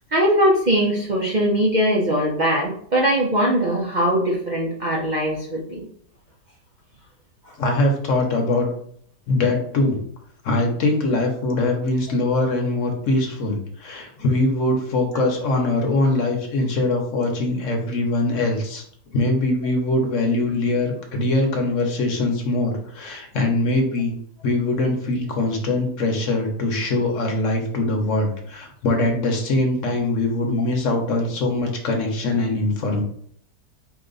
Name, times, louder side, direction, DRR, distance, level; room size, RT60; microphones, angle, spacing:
voice 1, 0.1-5.9, equal, 70° right, -2 dB, 0.4 m, -21 dB
voice 2, 7.6-8.7 9.3-10.0 10.4-24.2 24.4-33.0, left 2 dB, 55° left, 3 dB, 1.1 m, -22 dB
4.3 x 2.9 x 3.9 m, 0.63 s
omnidirectional pair, 1.8 m